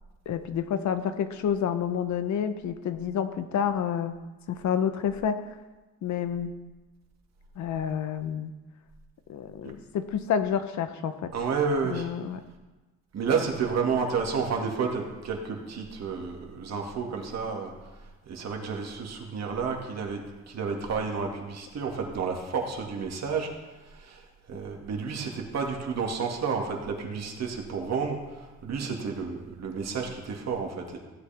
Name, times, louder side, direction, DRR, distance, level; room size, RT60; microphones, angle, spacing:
voice 1, 0.3-4.1 4.5-5.4 6.0-6.5 7.6-8.5 9.3-11.3 11.9-12.4, left 8 dB, 70° left, 10 dB, 0.9 m, -29 dB
voice 2, 11.3-12.1 13.1-31.0, right 5 dB, 60° right, 1 dB, 2.2 m, -31 dB
15.5 x 8.5 x 3.5 m, 1.2 s
cardioid pair, 90°, 30 cm